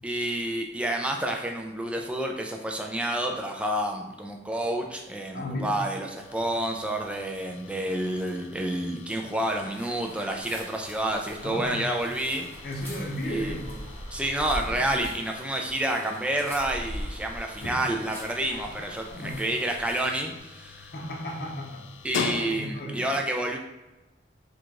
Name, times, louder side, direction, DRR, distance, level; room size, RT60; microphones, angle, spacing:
voice 1, 0.0-12.5 13.3-13.5 14.1-20.9 22.0-23.6, right 1 dB, 5° right, 2 dB, 0.4 m, -29 dB
voice 2, 5.3-5.8 11.4-11.8 12.6-13.8 14.6-14.8 17.6-17.8 18.5-19.4 20.9-21.8 22.5-23.1, left 1 dB, 55° left, 0 dB, 0.7 m, -35 dB
sound 1, 6.2-23.0, left 6 dB, 90° left, 0.3 m, -42 dB
sound 2, 9.5-20.0, right 1 dB, 30° right, 1.0 m, -51 dB
sound 3, 9.6-20.3, equal, 10° left, 0.9 m, -42 dB
3.7 x 2.5 x 4.5 m, 1.1 s
head